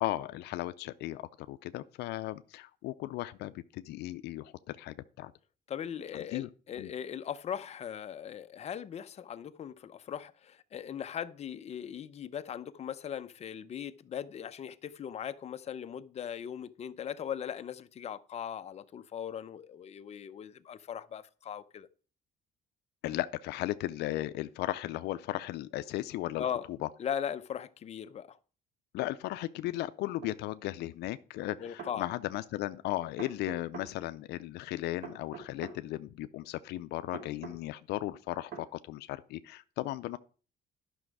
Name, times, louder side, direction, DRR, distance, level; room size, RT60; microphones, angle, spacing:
voice 1, 0.0-5.3 6.1-6.5 6.8-6.9 23.0-26.4 26.8-26.9 28.9-40.2, left 16 dB, 80° left, 0.5 m, -36 dB
voice 2, 5.7-21.9 26.4-26.7 27.0-28.4 31.6-32.1, left 9 dB, 40° left, 0.6 m, -39 dB
sound 1, 30.2-30.4 31.5-32.0 33.2-33.9 35.0-35.8 37.1-37.6 38.5-38.7, right 5 dB, 60° right, 2.7 m, -44 dB
11.5 x 6.1 x 4.7 m
cardioid pair, 110°, 17 cm